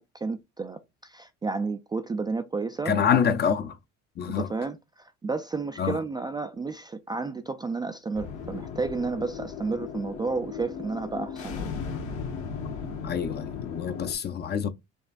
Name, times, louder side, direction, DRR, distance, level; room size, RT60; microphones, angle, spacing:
voice 1, 0.0-3.3 4.4-4.8 5.2-11.7, right 4 dB, 15° right, 0.3 m, -31 dB
voice 2, 2.9-3.8 4.2-4.5 5.8-6.0 13.0-14.7, left 7 dB, 35° left, 0.6 m, -26 dB
sound 1, 8.1-14.1, left 6 dB, 70° left, 1.3 m, -36 dB
5.2 x 2.3 x 2.4 m
supercardioid pair, 100°, 30 cm